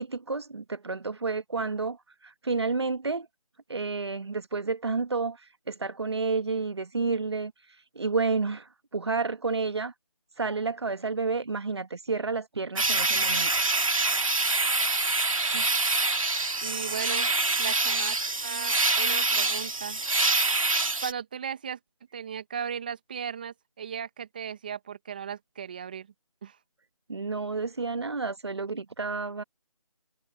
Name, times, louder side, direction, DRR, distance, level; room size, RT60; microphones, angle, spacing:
voice 1, 0.0-3.3 3.7-5.4 5.7-7.5 8.0-9.9 10.4-13.5 27.1-29.4, right 4 dB, 45° right, 1.7 m, -30 dB
sound 1, 12.8-21.1, right 3 dB, 65° right, 2.1 m, -25 dB
voice 2, 16.6-17.3 17.6-18.2 18.4-20.0 21.0-21.8 22.1-26.1 26.4-26.6, right 7 dB, 15° right, 1.3 m, -36 dB
figure-of-eight pair, 170°, 19 cm